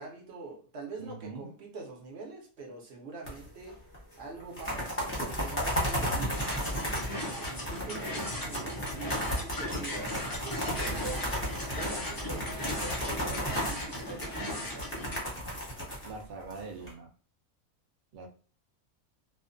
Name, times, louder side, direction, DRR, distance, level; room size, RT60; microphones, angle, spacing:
voice 1, 0.0-3.8 4.2-7.0 7.4-11.3 11.6-15.1, right 3 dB, 55° right, 1 dB, 0.8 m, -44 dB
voice 2, 1.0-1.5 8.5-8.9 16.0-17.1 18.1-18.3, right 4 dB, 90° right, 2 dB, 0.4 m, -43 dB
sound 1, 3.3-3.7 3.9-4.0 4.4-16.9, equal, 10° left, 0.7 m, -34 dB
sound 2, 6.3-15.2, left 1 dB, 35° left, 0.3 m, -37 dB
2.4 x 2.1 x 2.4 m, 0.40 s
omnidirectional pair, 1.5 m